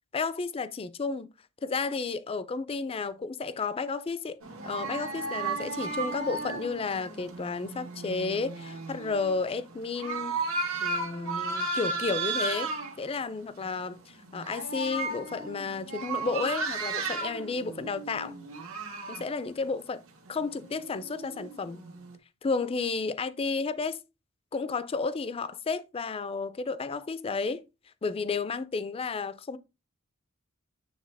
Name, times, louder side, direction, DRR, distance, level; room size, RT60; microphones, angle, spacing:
voice 1, 0.1-1.3 1.6-4.4 4.6-10.4 10.8-12.7 13.0-18.4 19.1-20.0 20.3-21.8 22.4-24.0 24.5-27.7 28.0-29.6, left 4 dB, 25° left, 0.4 m, -32 dB
sound 1, 4.4-12.9 13.6-13.8 14.1-19.2 20.3-22.1, right 3 dB, 80° right, 1.4 m, -35 dB
8.9 x 3.2 x 3.3 m
head